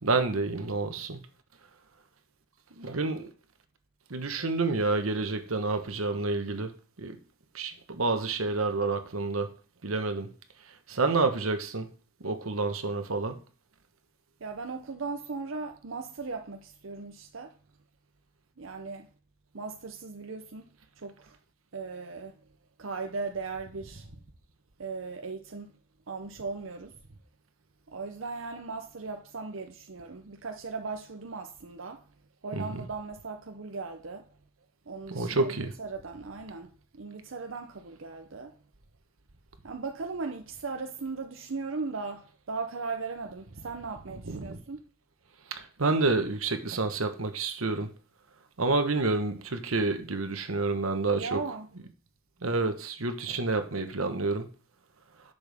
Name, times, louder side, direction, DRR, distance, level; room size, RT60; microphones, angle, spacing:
voice 1, 0.0-1.2 2.8-3.3 4.1-6.7 7.0-7.2 7.5-9.5 9.8-10.3 10.9-11.9 12.2-13.4 32.5-32.9 35.1-35.7 44.1-44.6 45.8-47.9 48.6-51.6 52.4-54.5, right 3 dB, 85° right, 1.3 m, -29 dB
voice 2, 14.4-17.5 18.6-19.1 19.5-20.7 21.0-21.4 21.7-22.4 22.8-24.0 24.8-25.7 26.1-26.9 27.9-32.1 32.4-34.3 34.9-38.5 39.6-44.8 51.2-51.7, right 4 dB, 65° right, 0.7 m, -38 dB
10.5 x 7.0 x 3.5 m
head